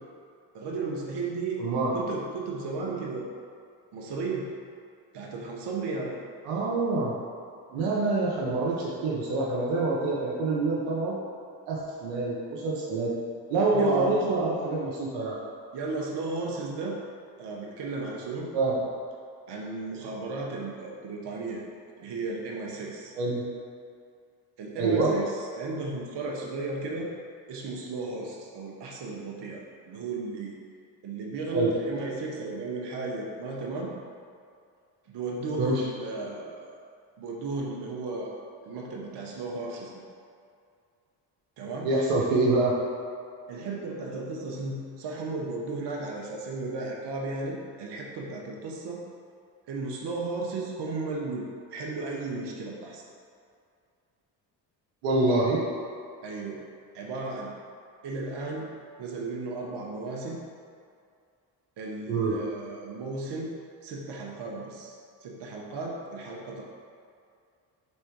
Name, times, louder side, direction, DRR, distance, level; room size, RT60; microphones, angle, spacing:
voice 1, 0.5-1.6 1.9-3.3 3.9-4.5 5.1-6.2 13.7-14.2 15.7-17.0 17.4-18.5 19.5-21.6 22.0-23.1 24.6-27.1 27.5-30.6 31.0-33.9 35.1-36.8 37.2-40.0 41.6-41.9 43.5-49.0 49.7-53.0 56.2-56.6 56.9-57.5 58.0-58.7 59.0-60.4 61.8-63.5 63.8-64.9 65.2-66.7, right 3 dB, 55° right, -2 dB, 1.0 m, -34 dB
voice 2, 1.6-1.9 6.4-7.2 7.7-11.2 11.7-13.1 13.5-15.4 18.5-18.8 23.2-23.4 24.8-25.1 31.5-31.7 35.6-35.8 41.8-42.8 55.0-55.6 62.1-62.4, right 3 dB, 85° right, -4 dB, 0.9 m, -26 dB
3.6 x 3.2 x 4.6 m, 2.3 s
hypercardioid pair, 55°, 50 cm